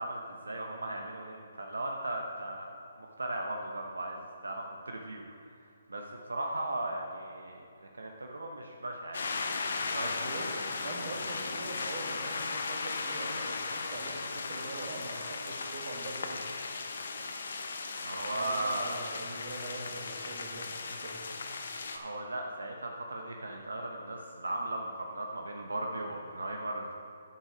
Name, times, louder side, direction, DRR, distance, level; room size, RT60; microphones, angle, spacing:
voice 1, 0.0-5.5 5.9-9.3 9.7-10.1 10.3-10.5 18.0-18.9 21.9-26.9, right 2 dB, 85° right, 1 dB, 0.8 m, -37 dB
sound 1, 9.1-22.0, left 4 dB, 65° left, 0.9 m, -37 dB
voice 2, 10.0-10.5 10.7-16.4 18.3-21.3, right 2 dB, 50° right, 0 dB, 1.8 m, -43 dB
10.0 x 5.7 x 5.0 m, 2.5 s
hypercardioid pair, 145°, 0 cm